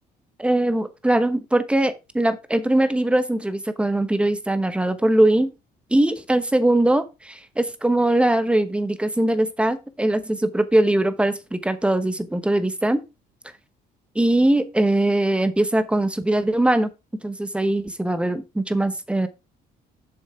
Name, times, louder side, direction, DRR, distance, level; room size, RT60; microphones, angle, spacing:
voice 1, 0.4-5.5 5.9-13.0 14.1-16.9 17.2-19.3, right 1 dB, 5° right, 1.0 m, -21 dB
7.6 x 6.2 x 4.4 m
cardioid pair, 110°, 17 cm